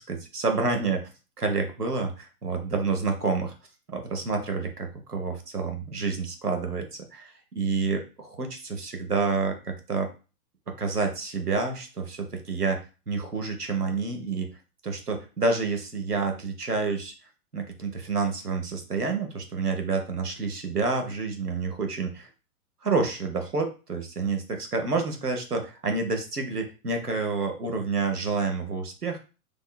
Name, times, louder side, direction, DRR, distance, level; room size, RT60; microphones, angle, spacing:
voice 1, 0.1-1.1 1.4-3.5 3.9-10.1 10.7-14.5 14.8-17.1 17.5-22.3 22.8-29.2, right 4 dB, 90° right, 4 dB, 1.0 m, -28 dB
4.0 x 3.0 x 2.2 m, 0.33 s
figure-of-eight pair, 110°, 45 cm